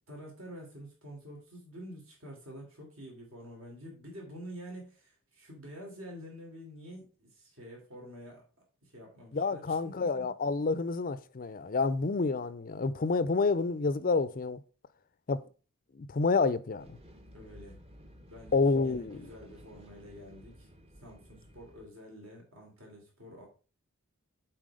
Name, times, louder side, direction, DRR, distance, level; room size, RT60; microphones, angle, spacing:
voice 1, 0.1-8.4 8.8-10.3 17.3-17.8 18.2-20.7 21.0-23.5, equal, 65° right, 3.2 m, -48 dB
voice 2, 9.3-14.6 15.3-15.4 15.9-17.0 18.5-19.2, left 4 dB, 40° left, 0.5 m, -29 dB
sound 1, 16.8-21.9, equal, 30° right, 1.0 m, -54 dB
7.5 x 4.6 x 4.9 m
head